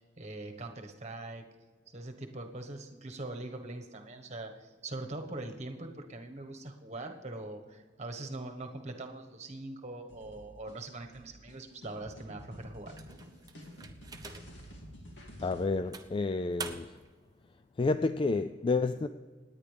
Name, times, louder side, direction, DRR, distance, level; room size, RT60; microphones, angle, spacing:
voice 1, 0.2-1.4 1.9-12.9, right 2 dB, 35° right, 1.3 m, -42 dB
sound 1, 10.1-15.7, equal, 65° left, 2.5 m, -50 dB
sound 2, 13.0-14.7 15.2-15.4 15.9-17.1, right 4 dB, 20° right, 0.8 m, -45 dB
voice 2, 15.4-16.9 17.8-19.1, left 3 dB, 25° left, 0.3 m, -30 dB
27.0 x 9.7 x 3.4 m
head